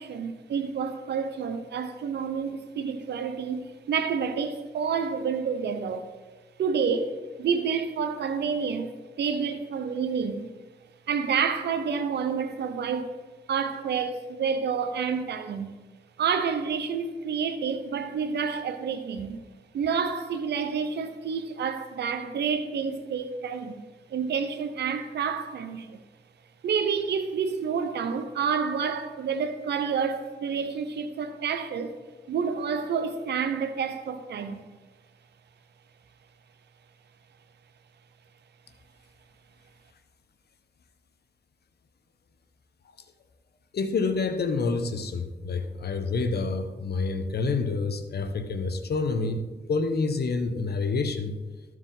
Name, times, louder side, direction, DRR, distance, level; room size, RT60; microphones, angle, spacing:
voice 1, 0.0-6.1 6.6-10.5 11.1-13.1 13.5-15.7 16.2-19.4 19.7-23.8 24.1-26.0 26.6-31.9 32.3-34.7, right 6 dB, 85° right, 0.7 m, -29 dB
voice 2, 43.7-51.4, left 4 dB, 70° left, 0.9 m, -28 dB
13.0 x 4.8 x 3.8 m
cardioid pair, 50°, 17 cm